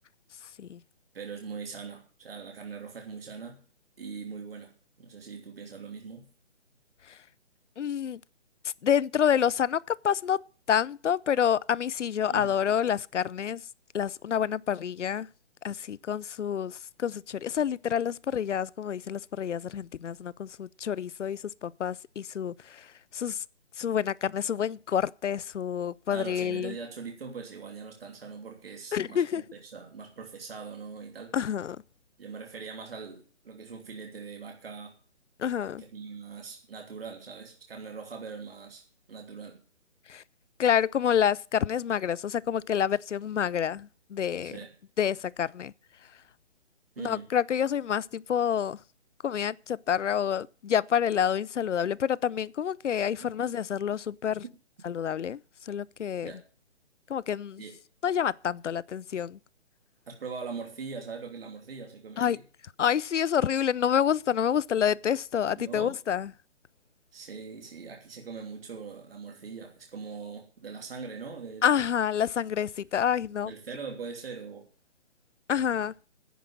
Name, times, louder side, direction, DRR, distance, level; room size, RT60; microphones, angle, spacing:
voice 1, 1.1-3.6 4.0-4.7 5.0-6.3 12.3-12.5 26.1-31.3 32.2-35.0 35.8-38.8 39.1-39.6 44.4-44.7 46.9-47.3 53.2-53.3 56.2-56.4 57.6-57.8 60.1-62.4 65.5-66.0 67.1-71.8 73.4-74.6, right 5 dB, 55° right, 3.1 m, -41 dB
voice 2, 7.8-8.2 8.8-10.4 10.7-13.6 13.9-15.3 15.6-22.9 23.1-23.4 23.8-26.7 28.9-29.4 31.3-31.8 35.4-35.8 40.1-40.2 40.6-44.5 45.0-45.7 47.0-48.8 49.2-54.4 54.8-55.4 55.7-56.3 57.1-57.6 58.0-59.4 62.2-62.4 62.8-66.3 71.6-73.5 75.5-75.9, left 8 dB, 90° left, 0.6 m, -28 dB
10.0 x 9.5 x 8.5 m
hypercardioid pair, 170°, 35 cm